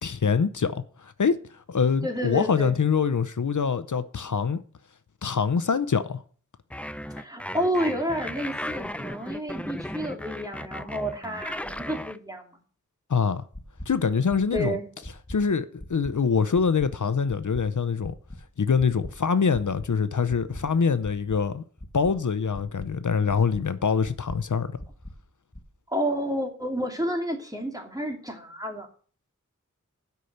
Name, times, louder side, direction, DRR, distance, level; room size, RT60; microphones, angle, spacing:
voice 1, 0.0-1.4 1.7-4.6 5.2-6.2 13.1-13.4 13.9-14.8 15.3-18.1 18.6-21.6 21.9-24.7, left 5 dB, 75° left, 0.6 m, -24 dB
voice 2, 2.0-2.8 7.1-12.5 14.5-14.8 25.9-28.9, equal, 10° right, 2.5 m, -30 dB
sound 1, 6.7-12.2, left 1 dB, 5° left, 0.5 m, -36 dB
sound 2, 13.5-13.9 14.3-14.6 15.0-15.4 15.8-16.1 16.5-16.9 17.3-17.6 18.0-18.4 18.8-19.1 19.5-19.9 20.3-20.6 21.0-21.4 21.8-22.1 22.5-22.9 23.3-23.6 24.0-24.4 24.8-25.1 25.5-25.6, left 1 dB, 20° left, 1.6 m, -39 dB
8.2 x 5.7 x 7.9 m
wide cardioid pair, 45°, 31 cm